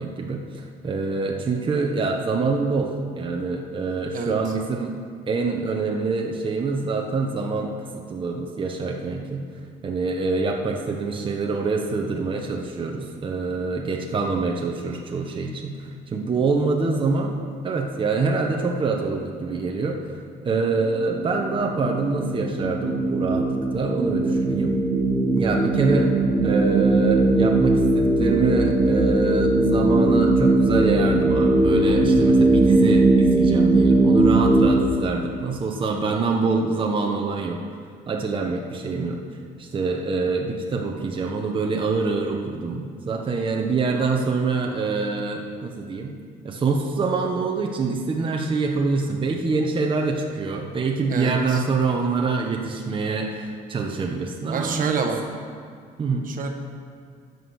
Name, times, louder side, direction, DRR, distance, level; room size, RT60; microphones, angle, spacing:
voice 1, 0.0-4.9 5.3-7.7 8.1-9.4 9.8-17.3 17.6-20.2 20.4-24.8 25.3-26.1 26.4-37.6 38.1-39.2 39.6-46.1 46.4-54.7 56.0-56.3, right 4 dB, 30° right, 1 dB, 1.2 m, -25 dB
sound 1, 21.0-34.7, right 2 dB, 5° right, 3.1 m, -19 dB
voice 2, 51.1-51.6 54.5-55.2 56.2-56.5, right 5 dB, 55° right, 4 dB, 1.4 m, -27 dB
12.5 x 8.0 x 6.5 m, 2.1 s
cardioid pair, 110°, 17 cm